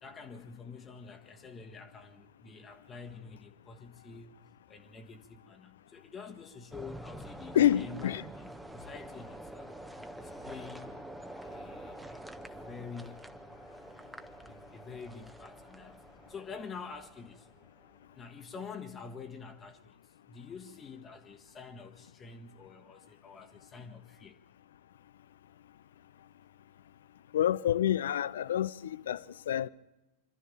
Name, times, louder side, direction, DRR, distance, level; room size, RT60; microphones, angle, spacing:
voice 1, 0.0-4.4 4.7-11.0 11.5-13.3 14.4-16.0 16.3-17.5 18.1-24.4, left 5 dB, 20° left, 1.5 m, -47 dB
sound 1, 6.7-17.9, right 1 dB, 5° right, 1.2 m, -47 dB
voice 2, 7.5-8.2 27.3-29.7, left 11 dB, 60° left, 0.7 m, -28 dB
25.5 x 13.0 x 8.9 m
figure-of-eight pair, 90°, 0 cm